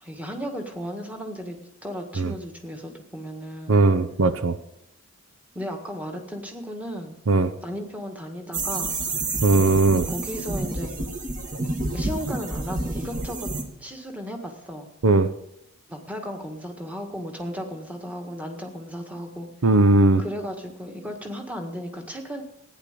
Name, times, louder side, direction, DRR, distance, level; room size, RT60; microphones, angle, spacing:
voice 1, 0.0-3.8 5.6-7.2 7.6-9.0 10.1-10.9 11.9-13.5 13.8-14.9 15.9-19.5 20.2-22.4, equal, 5° right, 3 dB, 1.7 m, -35 dB
voice 2, 3.7-4.6 7.3-7.5 9.4-10.1 15.0-15.3 19.6-20.2, right 2 dB, 65° right, 13 dB, 0.7 m, -18 dB
sound 1, 8.5-13.6, right 2 dB, 35° right, 2.1 m, -29 dB
15.5 x 10.0 x 6.8 m, 0.82 s
head